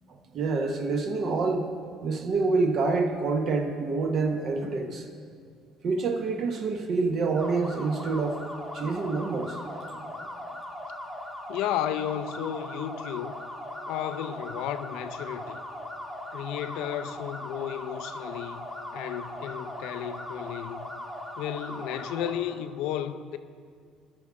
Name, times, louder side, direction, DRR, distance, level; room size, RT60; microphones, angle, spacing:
voice 1, 0.3-1.7 2.0-5.1 5.8-8.4 8.7-9.6, right 4 dB, 40° right, 0.7 m, -27 dB
sound 1, 7.4-22.3, left 1 dB, ahead, 1.3 m, -39 dB
voice 2, 11.5-13.4 13.9-15.6 16.3-18.7 18.9-20.9 21.4-23.4, left 10 dB, 80° left, 0.4 m, -33 dB
16.0 x 6.2 x 3.6 m
cardioid pair, 155°, 0 cm